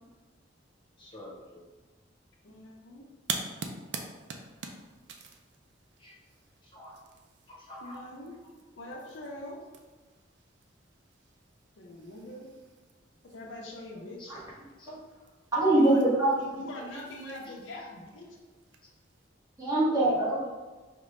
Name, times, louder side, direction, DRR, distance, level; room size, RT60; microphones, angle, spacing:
voice 1, 1.0-1.7 6.0-6.1 6.6-6.9 7.5-8.0 14.2-14.3 14.8-14.9 16.5-16.6 17.4-17.9 20.0-20.2, left 1 dB, 25° left, -4 dB, 0.9 m, -48 dB
voice 2, 2.4-3.1 3.4-3.5 7.8-8.3 8.8-9.6 11.8-12.5 13.2-14.3 15.7-16.0 16.4-18.3, left 1 dB, 90° left, -1 dB, 0.7 m, -43 dB
sound 1, 3.2-19.3, right 4 dB, 65° right, 0.4 m, -46 dB
voice 3, 15.5-16.3 19.6-20.5, right 1 dB, 20° right, -8 dB, 1.1 m, -23 dB
5.0 x 2.2 x 3.1 m, 1.3 s
head